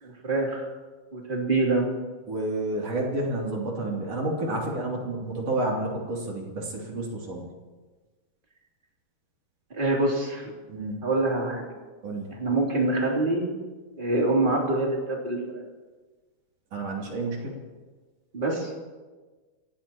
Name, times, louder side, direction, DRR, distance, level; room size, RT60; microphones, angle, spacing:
voice 1, 0.0-0.6 1.1-2.0 9.7-10.5 11.0-11.6 12.3-13.5 14.0-15.6 18.3-18.7, right 2 dB, 15° right, -3 dB, 3.1 m, -25 dB
voice 2, 2.3-7.4 10.7-11.0 12.0-12.3 16.7-17.6, right 2 dB, 50° right, -2 dB, 3.9 m, -30 dB
28.5 x 17.0 x 3.0 m, 1.3 s
omnidirectional pair, 3.8 m